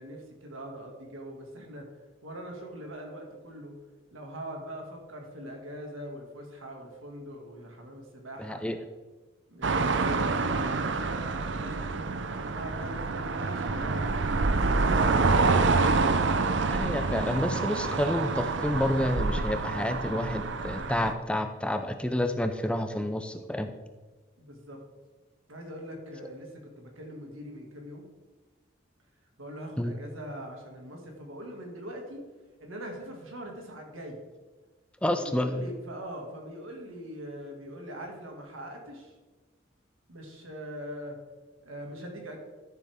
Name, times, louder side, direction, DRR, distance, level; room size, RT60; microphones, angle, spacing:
voice 1, 0.0-1.9 2.2-3.7 4.1-8.6 9.5-12.1 12.5-14.1 14.4-15.8 24.4-24.8 25.5-28.1 29.4-32.2 32.6-34.2 35.2-39.1 40.1-41.2 41.6-42.4, equal, 85° right, 1 dB, 2.3 m, -42 dB
voice 2, 8.4-8.8 16.7-23.7 29.8-30.0 35.0-35.6, left 1 dB, 5° left, 7 dB, 0.4 m, -29 dB
sound 1, 9.6-21.1, right 3 dB, 60° right, 0.6 m, -27 dB
13.0 x 7.2 x 3.6 m, 1.3 s
head